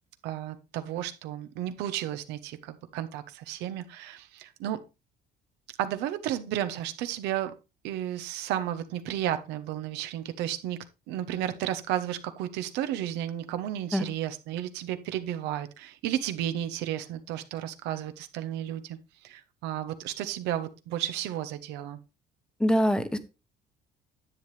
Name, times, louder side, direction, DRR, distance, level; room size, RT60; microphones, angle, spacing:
voice 1, 0.2-4.8 5.7-7.5 7.8-22.0, right 11 dB, 90° right, 1.0 m, -33 dB
voice 2, 22.6-23.2, equal, 5° left, 0.9 m, -23 dB
10.5 x 7.9 x 3.3 m
cardioid pair, 120°, 17 cm